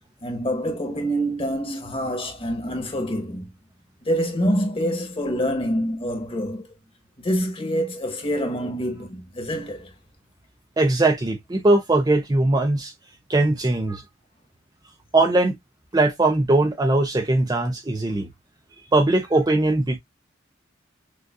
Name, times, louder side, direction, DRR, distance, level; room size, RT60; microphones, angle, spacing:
voice 1, 0.2-3.5 4.0-6.7 7.2-9.9 18.1-18.2, equal, 30° left, 1.3 m, -26 dB
voice 2, 10.8-12.9 13.3-14.0 15.1-15.6 15.9-18.3 18.9-20.0, right 2 dB, 20° right, 0.5 m, -20 dB
6.5 x 2.5 x 2.3 m
head